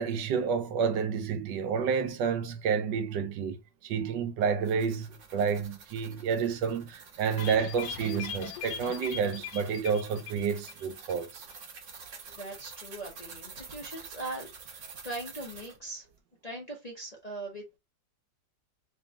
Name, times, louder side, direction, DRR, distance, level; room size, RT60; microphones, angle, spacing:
voice 1, 0.0-11.4, right 6 dB, 85° right, 1.4 m, -30 dB
sound 1, 4.4-15.8, right 5 dB, 50° right, 1.1 m, -48 dB
sound 2, 7.4-10.8 11.1-11.2 11.5-11.6, left 8 dB, 90° left, 1.3 m, -40 dB
voice 2, 12.4-16.0 16.4-17.6, right 2 dB, 35° left, 0.6 m, -40 dB
3.4 x 3.0 x 3.5 m
omnidirectional pair, 1.9 m